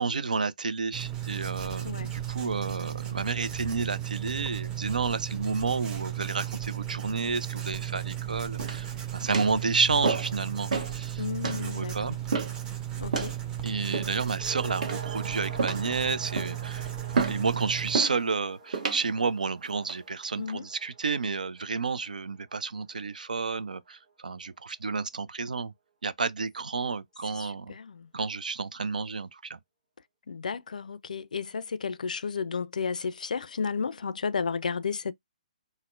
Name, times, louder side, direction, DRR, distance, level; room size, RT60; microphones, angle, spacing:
voice 1, 0.0-11.2 11.5-12.2 13.6-25.7 26.0-27.8 28.1-29.6, right 4 dB, 75° right, 0.4 m, -31 dB
Writing, 0.9-18.0, right 11 dB, 15° right, 0.7 m, -35 dB
sound 1, 8.6-8.9 9.3-9.6 10.0-10.4 10.7-10.9 11.4-11.6 12.3-12.6 13.1-13.4 13.9-14.3 14.8-15.2 15.6-15.9 16.3-16.6 17.1-17.4 17.9-18.2 18.7-19.0 19.6-20.0, right 4 dB, 60° right, 1.1 m, -30 dB
voice 2, 11.2-12.0 13.0-13.3 20.4-20.6 27.4-28.1 30.3-35.1, left 5 dB, 70° left, 0.4 m, -32 dB
sound 2, 14.3-22.8 23.1-23.2, right 4 dB, 40° right, 1.1 m, -46 dB
4.1 x 2.1 x 2.4 m
figure-of-eight pair, 130°, 4 cm